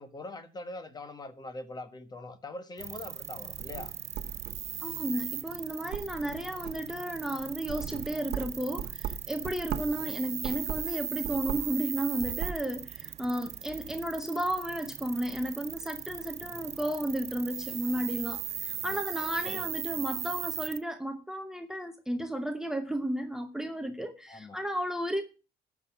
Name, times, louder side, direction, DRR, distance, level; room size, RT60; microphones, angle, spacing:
voice 1, 0.0-3.9 9.9-10.2 16.4-16.6 18.8-19.0 19.4-19.7 24.3-24.6, left 2 dB, 25° left, 1.4 m, -43 dB
sound 1, 2.8-20.8, right 9 dB, 40° right, 0.5 m, -38 dB
sound 2, 3.4-4.9 5.4-5.6 5.9-6.9 7.4-10.0 10.4-11.8 12.1-12.6, right 9 dB, 70° right, 1.1 m, -38 dB
voice 2, 4.8-25.2, equal, 5° right, 0.9 m, -33 dB
13.5 x 6.0 x 5.9 m
cardioid pair, 110°, 17 cm